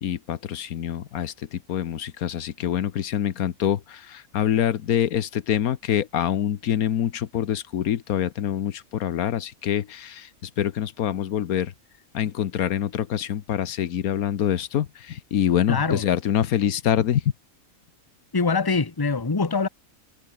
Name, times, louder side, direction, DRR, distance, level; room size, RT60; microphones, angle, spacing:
voice 1, 0.0-11.7 12.1-17.2, left 10 dB, 80° left, 1.4 m, -25 dB
voice 2, 15.7-16.0 18.3-19.7, left 4 dB, 15° left, 1.1 m, -23 dB
omnidirectional pair, 1.5 m